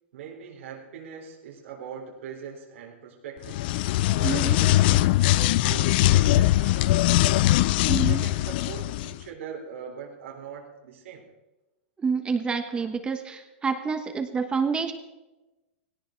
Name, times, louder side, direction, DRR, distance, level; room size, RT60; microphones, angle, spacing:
voice 1, 0.1-3.7 4.1-4.9 5.2-7.5 8.0-11.3, right 6 dB, 80° right, -1 dB, 3.8 m, -41 dB
sound 1, 3.4-9.1, left 16 dB, 50° left, 0.5 m, -21 dB
voice 2, 4.2-4.6 7.9-8.2 12.0-14.9, right 5 dB, 15° right, 7 dB, 1.2 m, -28 dB
18.0 x 17.0 x 4.6 m, 1.1 s
supercardioid pair, 145°, 7 cm